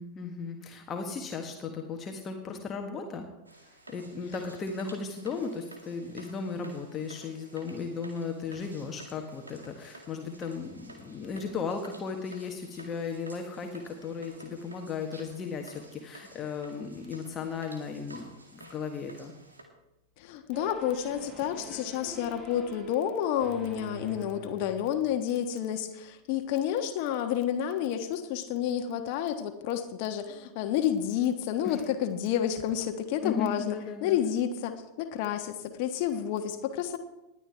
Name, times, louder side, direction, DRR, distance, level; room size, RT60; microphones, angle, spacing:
voice 1, 0.0-3.2 3.9-19.3 31.6-31.8 33.2-34.2, left 5 dB, 25° left, 3 dB, 1.5 m, -36 dB
sound 1, 3.5-19.6, right 2 dB, 80° right, 2.3 m, -52 dB
voice 2, 20.2-37.0, left 10 dB, 45° left, 6 dB, 1.4 m, -30 dB
sound 2, 20.5-25.2, right 4 dB, 20° right, 5.5 m, -45 dB
19.5 x 11.0 x 3.5 m, 0.95 s
figure-of-eight pair, 90°, 0 cm